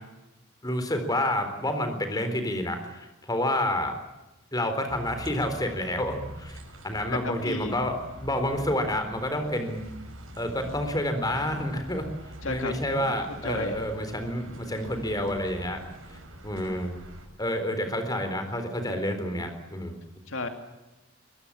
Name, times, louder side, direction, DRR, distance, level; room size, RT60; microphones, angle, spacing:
voice 1, 0.6-3.9 4.5-6.6 6.8-7.9 8.2-9.8 10.4-12.0 12.4-15.8 16.4-17.0 17.4-20.0, left 1 dB, 20° left, 7 dB, 4.0 m, -29 dB
sound 1, 4.9-17.3, right 1 dB, 80° right, 6.1 m, -44 dB
voice 2, 7.1-7.8 12.4-13.2 13.4-13.8 20.3-20.5, left 2 dB, 75° left, 6 dB, 2.5 m, -33 dB
23.0 x 21.5 x 8.6 m, 1.0 s
head